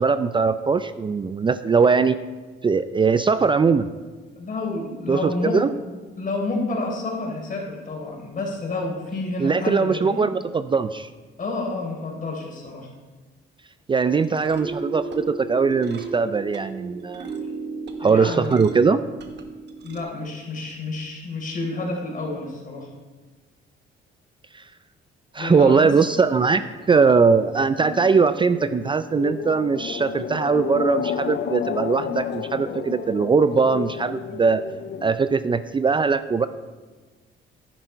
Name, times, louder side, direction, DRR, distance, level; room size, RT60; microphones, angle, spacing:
voice 1, 0.0-2.2 2.6-3.9 5.1-5.7 9.4-11.1 13.9-17.3 18.0-19.0 24.5-24.6 25.3-34.6 35.0-36.5, right 5 dB, 25° right, 12 dB, 0.4 m, -20 dB
voice 2, 4.4-5.6 6.2-10.2 11.4-12.9 18.0-18.6 19.8-22.9 25.4-25.9, left 2 dB, 40° left, -1 dB, 3.7 m, -29 dB
sound 1, 14.1-20.0, right 3 dB, 60° right, 1.2 m, -35 dB
sound 2, 25.8-35.1, left 9 dB, 60° left, 0.5 m, -32 dB
10.5 x 10.0 x 4.5 m, 1.4 s
cardioid pair, 90°, 20 cm